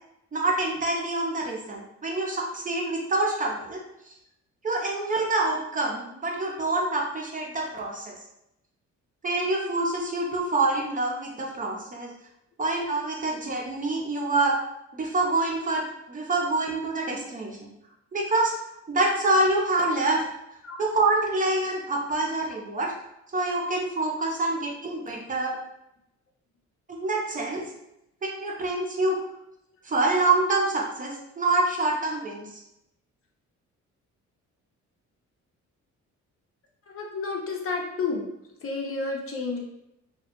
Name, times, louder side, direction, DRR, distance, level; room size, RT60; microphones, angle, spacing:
voice 1, 0.3-3.8 4.6-8.1 9.2-12.1 12.6-14.5 14.9-17.5 18.1-18.5 18.9-20.2 20.8-22.9 23.3-25.6 26.9-27.6 28.2-29.2 29.8-32.6, right 2 dB, 25° right, -1 dB, 0.5 m, -26 dB
voice 2, 36.9-38.3 38.6-39.6, left 4 dB, 45° left, 0 dB, 0.6 m, -31 dB
2.1 x 2.0 x 2.9 m, 0.85 s
cardioid pair, 90°, 30 cm